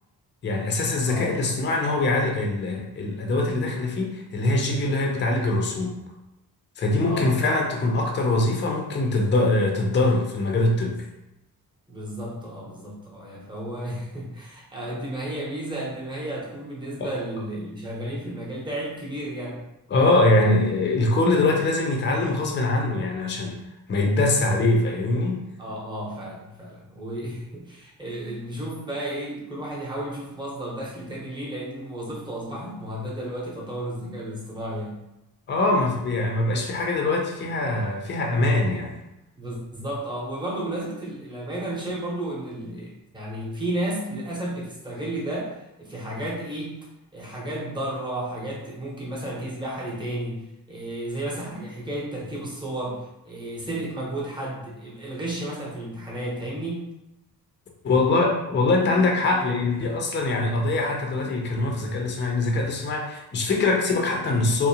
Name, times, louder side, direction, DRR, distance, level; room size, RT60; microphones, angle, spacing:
voice 1, 0.4-6.0 6.8-11.0 17.0-17.1 19.9-23.6 23.9-25.4 35.5-39.0 57.8-64.7, left 2 dB, 30° left, 0 dB, 0.5 m, -23 dB
voice 2, 1.1-1.5 7.0-7.3 11.9-19.6 25.6-35.0 39.4-45.5 45.8-46.7 47.1-56.9, right 1 dB, 10° right, -4 dB, 0.8 m, -33 dB
2.6 x 2.1 x 2.8 m, 0.91 s
cardioid pair, 95°, 38 cm